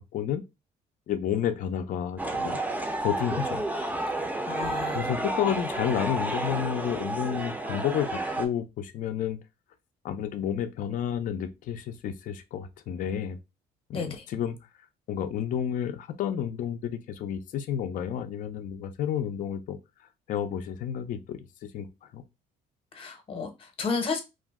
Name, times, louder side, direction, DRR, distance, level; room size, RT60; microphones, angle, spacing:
voice 1, 1.1-2.6 3.0-3.6 4.9-9.4 10.0-13.4 13.9-14.6 15.1-19.8 20.3-22.2, left 9 dB, 50° left, 0.4 m, -31 dB
sound 1, 2.2-8.5, right 1 dB, 10° right, 0.5 m, -31 dB
voice 2, 4.5-5.0 13.9-14.2 22.9-24.2, left 4 dB, 35° left, 0.8 m, -32 dB
2.4 x 2.0 x 3.4 m
cardioid pair, 110°, 17 cm